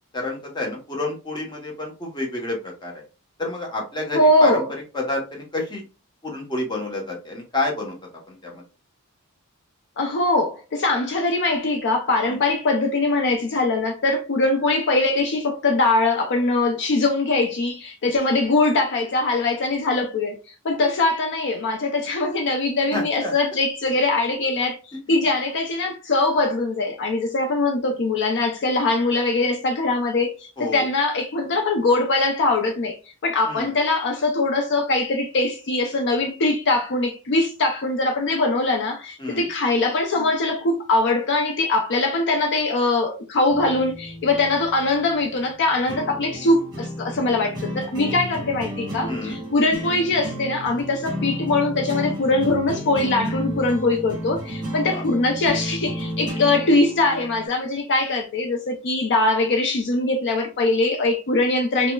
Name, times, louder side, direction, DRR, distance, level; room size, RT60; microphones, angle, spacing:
voice 1, 0.1-3.0 3.4-5.8 6.2-8.0 8.3-8.6 12.2-12.4 22.9-23.3 25.1-25.2 30.6-30.9 33.5-33.7 39.2-39.4 49.1-49.4 54.8-55.0, left 2 dB, 20° left, 1.0 m, -29 dB
voice 2, 4.1-4.7 10.0-20.4 20.6-33.0 33.2-61.9, left 2 dB, 55° left, 0.5 m, -22 dB
sound 1, 43.5-57.5, equal, 20° right, 1.4 m, -32 dB
5.2 x 2.1 x 2.2 m
head